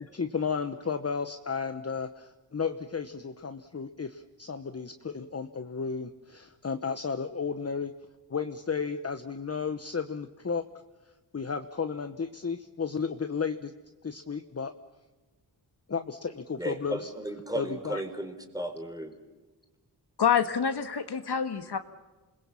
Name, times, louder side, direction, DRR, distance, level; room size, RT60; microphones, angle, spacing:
voice 1, 0.1-7.9 8.3-10.6 11.3-13.7 14.0-14.7 15.9-17.1 17.5-18.0, left 5 dB, 35° left, 9 dB, 1.1 m, -33 dB
voice 2, 16.6-19.1, right 1 dB, 10° right, 7 dB, 3.8 m, -35 dB
voice 3, 20.2-21.8, left 7 dB, 70° left, 9 dB, 1.6 m, -26 dB
28.0 x 21.0 x 7.2 m, 1.2 s
wide cardioid pair, 100°, 41 cm